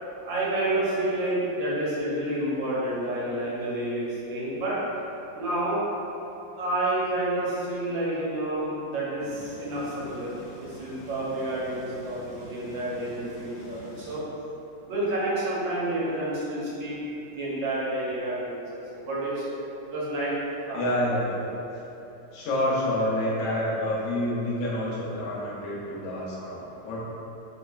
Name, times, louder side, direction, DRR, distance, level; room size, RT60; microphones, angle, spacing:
voice 1, 0.2-4.8 5.3-5.8 6.5-10.3 10.6-14.2 14.9-17.0 17.3-19.5 19.9-20.4 20.6-21.3, right 1 dB, 85° right, -7 dB, 1.5 m, -29 dB
sound 1, 9.2-14.2, equal, 65° left, 1.0 m, -46 dB
voice 2, 20.7-21.4 22.3-27.0, left 1 dB, 85° left, -6 dB, 1.5 m, -28 dB
3.6 x 3.1 x 2.2 m, 3.0 s
omnidirectional pair, 2.0 m